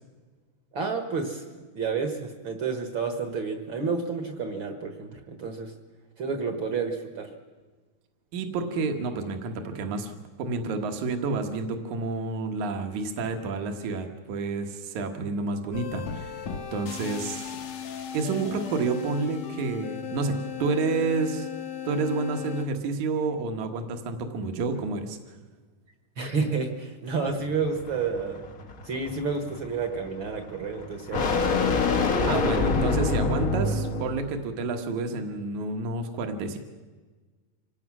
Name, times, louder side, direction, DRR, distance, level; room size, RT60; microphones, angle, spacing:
voice 1, 0.7-1.4 1.8-5.7 6.2-7.3 26.2-28.4 28.8-31.6 31.9-32.5, right 5 dB, 50° right, 6 dB, 1.7 m, -30 dB
voice 2, 8.3-17.6 18.1-21.5 21.8-25.2 32.3-36.6, right 4 dB, 75° right, 5 dB, 2.8 m, -29 dB
sound 1, 15.7-22.6, left 8 dB, 65° left, 2.5 m, -36 dB
sound 2, 27.3-34.3, left 4 dB, 45° left, 1.1 m, -27 dB
25.5 x 18.0 x 6.2 m, 1.3 s
omnidirectional pair, 3.5 m